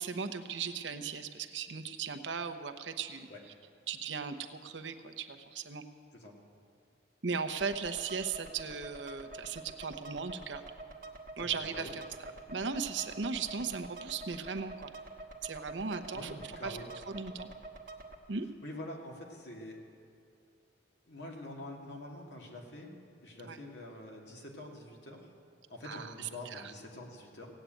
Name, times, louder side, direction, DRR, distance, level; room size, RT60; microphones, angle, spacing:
voice 1, 0.0-3.3 3.9-5.8 7.2-10.6 11.4-12.0 12.5-14.9 15.4-16.3 16.6-16.8 17.1-17.5 18.3-18.5 23.4-23.6 25.8-26.7, right 5 dB, 85° right, 7 dB, 0.9 m, -37 dB
sound 1, 7.5-18.1, right 2 dB, 50° right, 1.3 m, -48 dB
voice 2, 11.4-11.9 16.1-16.9 18.6-19.8 21.1-22.9 23.2-25.3 25.7-27.5, left 1 dB, 70° left, -1 dB, 2.4 m, -46 dB
16.5 x 8.5 x 9.1 m, 2.5 s
head